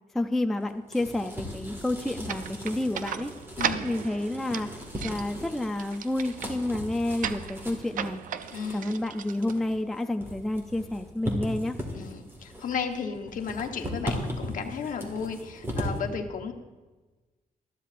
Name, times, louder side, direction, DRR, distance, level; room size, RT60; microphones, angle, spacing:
voice 1, 0.1-3.3 3.8-8.2 8.7-11.8, left 1 dB, ahead, 6 dB, 0.4 m, -30 dB
sound 1, 0.6-16.0, equal, 15° right, 1.8 m, -38 dB
sound 2, 2.3-10.1, right 8 dB, 65° right, 0.5 m, -37 dB
voice 2, 3.6-3.9 8.5-9.0 11.9-16.5, left 6 dB, 65° left, 4 dB, 1.1 m, -34 dB
20.0 x 12.5 x 2.5 m, 1.2 s
wide cardioid pair, 180°, 15 cm